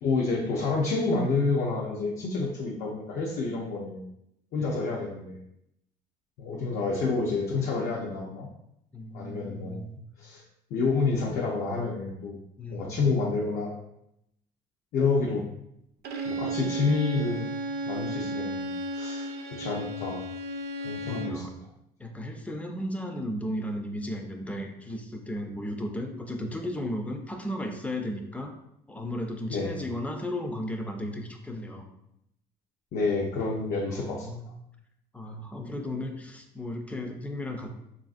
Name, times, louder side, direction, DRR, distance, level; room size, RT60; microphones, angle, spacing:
voice 1, 0.0-4.0 4.5-5.4 6.4-8.5 9.1-9.8 10.2-10.4 10.7-12.4 12.7-13.8 14.9-15.4 16.2-17.5 17.9-20.2 20.8-21.5 29.5-29.8 32.9-34.3, left 4 dB, 70° left, -3 dB, 0.6 m, -28 dB
voice 2, 8.9-10.0 12.6-13.3 21.0-21.5 22.0-28.5 28.9-31.8 33.9-34.5 35.1-37.7, left 1 dB, 10° left, 4 dB, 0.4 m, -35 dB
Bowed string instrument, 16.0-21.5, right 2 dB, 70° right, 0.5 m, -34 dB
3.3 x 2.5 x 2.4 m, 0.79 s
cardioid pair, 110°, 17 cm